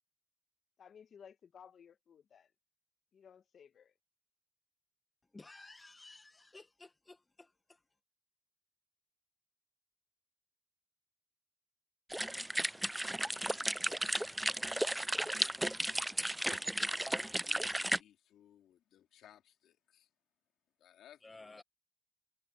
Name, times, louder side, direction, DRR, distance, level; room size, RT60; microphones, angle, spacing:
voice 1, 0.8-2.5 3.1-3.9, left 7 dB, 55° left, 1.9 m, -57 dB
voice 2, 5.3-7.8 21.2-21.6, left 2 dB, 20° left, 1.4 m, -55 dB
sound 1, 12.1-18.0, right 1 dB, 5° right, 0.4 m, -34 dB
voice 3, 16.5-20.1 20.8-21.6, left 11 dB, 75° left, 2.6 m, -61 dB
cardioid pair, 90°, 0 cm